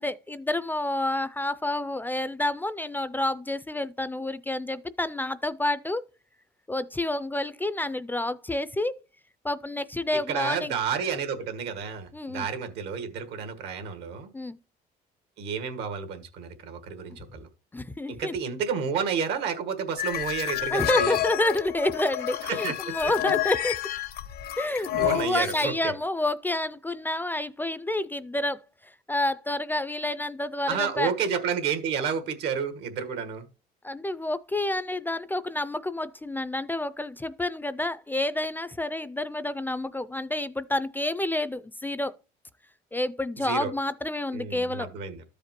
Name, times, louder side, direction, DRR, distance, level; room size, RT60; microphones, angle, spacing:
voice 1, 0.0-6.0 6.7-9.0 9.4-10.7 12.1-12.5 14.3-14.6 17.7-18.3 20.7-23.8 24.6-31.1 33.8-42.1 42.9-44.9, left 1 dB, 10° left, 0.3 m, -29 dB
voice 2, 10.3-14.3 15.4-17.5 18.1-21.2 22.4-23.1 24.9-25.9 30.7-33.5 43.4-43.7 44.3-45.2, right 6 dB, 85° right, 1.4 m, -31 dB
sound 1, 20.0-25.7, left 13 dB, 65° left, 0.6 m, -29 dB
13.0 x 5.0 x 2.9 m
cardioid pair, 110°, 17 cm